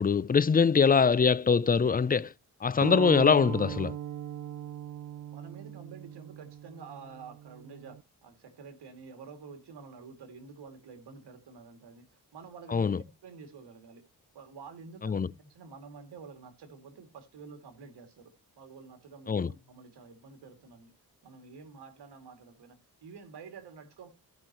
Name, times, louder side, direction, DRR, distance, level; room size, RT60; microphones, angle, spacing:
voice 1, 0.0-2.3 2.6-4.0 12.7-13.0 15.0-15.3 19.3-19.5, left 5 dB, 25° left, 0.5 m, -23 dB
sound 1, 2.8-8.0, right 11 dB, 50° right, 0.5 m, -39 dB
voice 2, 5.3-14.0 14.3-20.9 21.2-24.1, right 5 dB, 80° right, 2.5 m, -49 dB
15.0 x 5.8 x 3.0 m
cardioid pair, 65°, 40 cm